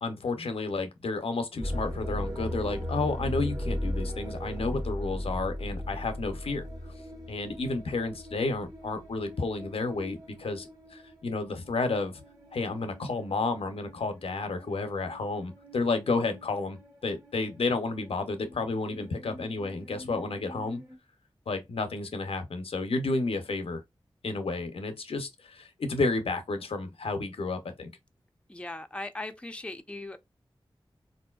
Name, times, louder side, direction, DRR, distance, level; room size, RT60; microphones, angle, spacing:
voice 1, 0.0-6.7 7.3-12.2 12.5-20.8 21.5-23.8 24.2-27.9, left 3 dB, 80° left, 0.6 m, -31 dB
sound 1, 1.6-21.0, left 1 dB, 35° right, 1.4 m, -39 dB
voice 2, 28.5-30.2, left 2 dB, 10° left, 0.5 m, -38 dB
3.6 x 2.5 x 2.3 m
cardioid pair, 40°, 10 cm